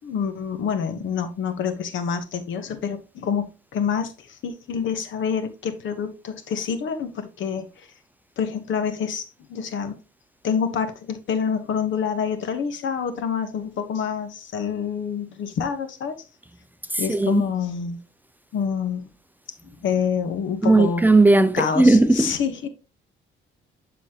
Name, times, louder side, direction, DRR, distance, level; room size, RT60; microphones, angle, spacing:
voice 1, 0.0-7.9 8.4-10.0 10.4-16.2 17.0-18.0 18.5-19.1 19.8-21.0 21.3-22.7, left 7 dB, 70° left, 1.2 m, -27 dB
voice 2, 16.9-17.4 20.6-22.4, right 2 dB, 10° right, 0.6 m, -17 dB
11.0 x 4.2 x 2.9 m
cardioid pair, 90°, 20 cm